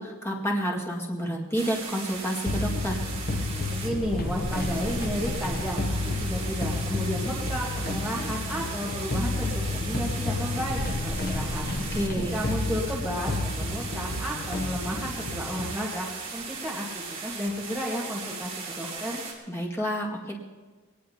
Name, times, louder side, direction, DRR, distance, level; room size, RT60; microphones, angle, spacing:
voice 1, 0.0-3.0 11.9-12.4 19.5-20.3, equal, 10° left, -3 dB, 2.1 m, -29 dB
sound 1, 1.5-19.3, right 5 dB, 30° right, 3.5 m, -38 dB
sound 2, 2.5-15.8, left 2 dB, 45° left, 0.8 m, -30 dB
voice 2, 3.7-19.2, equal, 5° right, -5 dB, 1.7 m, -33 dB
22.0 x 18.5 x 2.9 m, 1.4 s
head